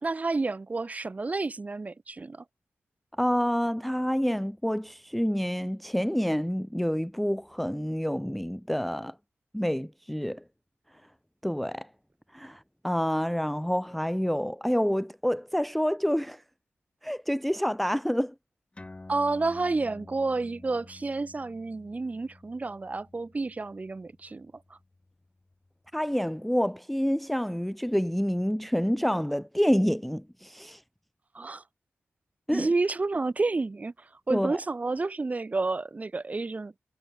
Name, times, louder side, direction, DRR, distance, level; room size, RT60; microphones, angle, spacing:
voice 1, 0.0-2.4 19.1-24.8 31.3-31.6 32.5-36.7, right 3 dB, 30° right, 1.2 m, -30 dB
voice 2, 3.2-9.1 9.5-10.4 11.4-11.9 12.3-16.4 17.0-18.3 25.9-30.8 32.5-32.7 34.3-34.6, equal, ahead, 0.4 m, -28 dB
sound 1, 18.7-25.7, left 2 dB, 25° left, 2.7 m, -50 dB
wide cardioid pair, 110°, 5 cm